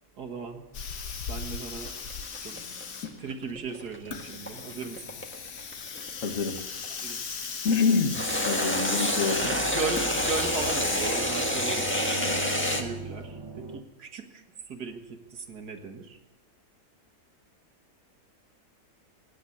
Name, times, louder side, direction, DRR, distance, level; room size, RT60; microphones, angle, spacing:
voice 1, 0.2-0.7 1.3-1.9 2.4-2.6 3.2-5.2 7.0-7.2 9.4-11.9 12.5-16.2, right 4 dB, 90° right, 5 dB, 2.2 m, -37 dB
Hiss, 0.7-11.1, left 6 dB, 80° left, 1.8 m, -38 dB
sound 1, 1.8-7.0 8.1-12.8, left 1 dB, 10° left, 1.3 m, -28 dB
voice 2, 6.2-6.6 7.6-8.2 8.4-9.5, left 4 dB, 55° left, 5 dB, 1.9 m, -26 dB
sound 2, 8.1-13.8, right 3 dB, 20° right, 0.8 m, -39 dB
16.5 x 9.8 x 8.5 m, 1.0 s
omnidirectional pair, 1.6 m